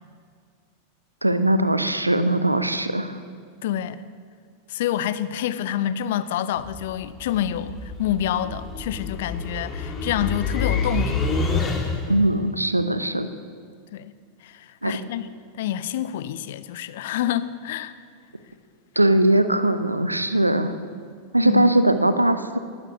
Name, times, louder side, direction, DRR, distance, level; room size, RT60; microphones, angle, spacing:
voice 1, 1.2-3.2 12.1-13.3 14.8-15.0 19.0-20.7 21.3-22.6, right 1 dB, 90° right, 11 dB, 0.5 m, -20 dB
voice 2, 3.6-4.0 4.7-11.3 13.9-14.1 14.4-15.3 15.5-17.9 21.4-21.7, left 11 dB, 55° left, 14 dB, 0.5 m, -27 dB
sound 1, 6.6-12.2, left 3 dB, 25° left, 1.6 m, -28 dB
19.5 x 9.7 x 2.7 m, 2.1 s
figure-of-eight pair, 90°, 0 cm